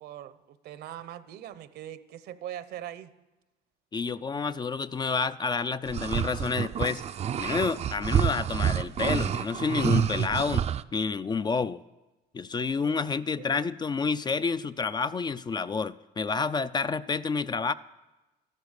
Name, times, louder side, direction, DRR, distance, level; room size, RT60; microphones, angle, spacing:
voice 1, 0.0-3.1 12.8-13.0 13.4-13.7, right 11 dB, 70° right, 14 dB, 0.8 m, -42 dB
voice 2, 3.9-7.0 7.4-11.8 12.3-17.7, left 5 dB, 25° left, 14 dB, 0.4 m, -29 dB
sound 1, 5.9-10.8, right 9 dB, 40° right, 0.4 m, -28 dB
13.0 x 12.0 x 6.5 m, 1.1 s
cardioid pair, 110°, 17 cm